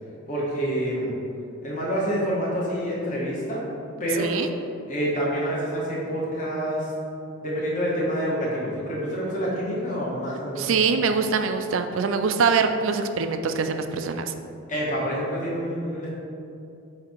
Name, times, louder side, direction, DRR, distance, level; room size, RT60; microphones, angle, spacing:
voice 1, 0.3-1.1 1.6-3.6 4.0-4.4 4.9-6.9 7.4-10.8 14.7-16.1, equal, 35° left, -5 dB, 1.3 m, -27 dB
voice 2, 4.2-4.5 10.6-14.3, right 5 dB, 60° right, 8 dB, 0.4 m, -24 dB
8.2 x 2.9 x 4.4 m, 2.7 s
head